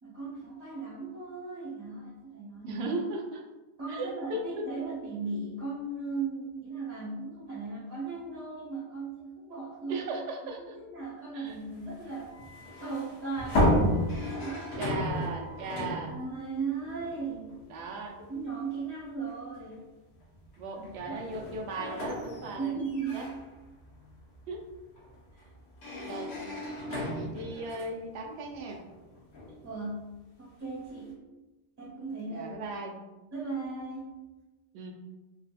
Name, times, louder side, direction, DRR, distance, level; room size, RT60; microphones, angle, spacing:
voice 1, 0.0-2.9 3.8-10.1 10.6-12.3 12.8-13.9 14.2-14.7 15.8-17.5 18.3-19.9 20.7-21.2 22.6-23.3 25.3-25.5 29.6-30.1 30.4-31.2 31.8-32.5 33.3-34.2, right 4 dB, 25° right, -6 dB, 0.8 m, -37 dB
voice 2, 2.6-3.4 3.9-4.4 9.9-10.8 11.3-11.5 14.8-16.2 17.7-18.2 20.6-22.7 23.1-23.2 24.5-24.6 26.0-26.4 26.9-28.8 32.3-33.0 34.7-34.9, right 2 dB, 70° right, 1 dB, 0.8 m, -37 dB
sound 1, 11.5-17.8 18.2-18.4 19.5-19.7 20.1-29.9, equal, 80° left, 1.1 m, -33 dB
Wind instrument woodwind instrument, 12.2-16.2, right 4 dB, 45° left, 0.8 m, -53 dB
3.8 x 2.4 x 2.4 m, 1.1 s
omnidirectional pair, 1.2 m